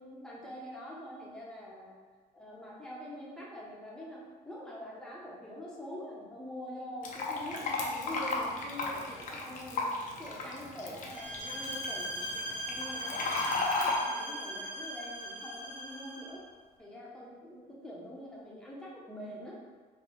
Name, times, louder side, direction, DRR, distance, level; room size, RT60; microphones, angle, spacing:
voice 1, 0.0-1.9 2.3-9.9 10.2-16.4 16.8-19.6, left 1 dB, 5° left, -6 dB, 1.1 m, -45 dB
Fill (with liquid), 7.0-14.0, left 3 dB, 50° left, 0.8 m, -35 dB
sound 1, 11.1-16.4, equal, 35° right, 1.1 m, -39 dB
4.6 x 2.4 x 3.9 m, 1.5 s
cardioid pair, 110°, 17 cm